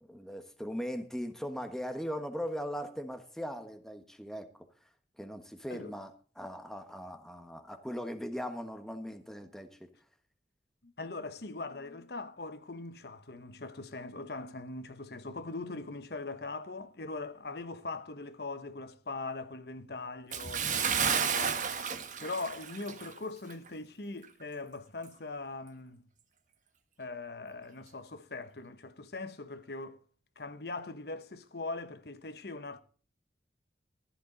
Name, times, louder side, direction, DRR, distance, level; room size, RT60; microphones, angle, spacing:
voice 1, 0.1-4.7 5.2-6.1 6.4-9.9 20.8-20.9 21.9-22.1, equal, 5° left, 1.3 m, -39 dB
voice 2, 10.8-21.7 22.2-26.1 27.0-30.0 30.4-32.8, left 3 dB, 60° left, 1.0 m, -41 dB
Bathtub (filling or washing) / Splash splatter, 20.3-23.2 23.5-23.7 24.2-24.3, right 7 dB, 45° right, 1.4 m, -32 dB
14.5 x 11.0 x 3.9 m
head